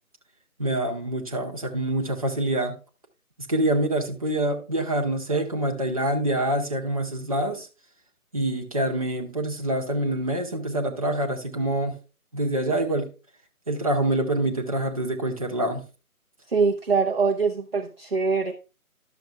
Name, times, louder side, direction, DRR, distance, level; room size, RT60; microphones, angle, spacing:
voice 1, 0.6-2.8 3.5-7.7 8.3-11.9 12.3-13.1 13.7-15.8, right 1 dB, 25° right, 1.1 m, -26 dB
voice 2, 16.5-18.5, right 5 dB, 40° right, 0.8 m, -23 dB
12.0 x 7.0 x 3.3 m
figure-of-eight pair, 155°, 44 cm